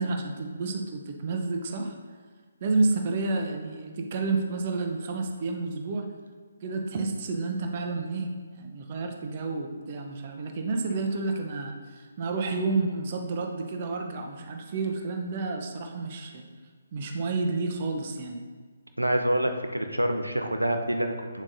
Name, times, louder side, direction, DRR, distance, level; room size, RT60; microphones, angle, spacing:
voice 1, 0.0-1.9 2.6-6.1 6.6-16.5 16.9-18.4, right 3 dB, 35° right, 3 dB, 0.8 m, -30 dB
voice 2, 19.0-21.4, right 1 dB, 85° right, 5 dB, 0.7 m, -27 dB
8.4 x 7.2 x 2.7 m, 1.5 s
figure-of-eight pair, 140°, 0 cm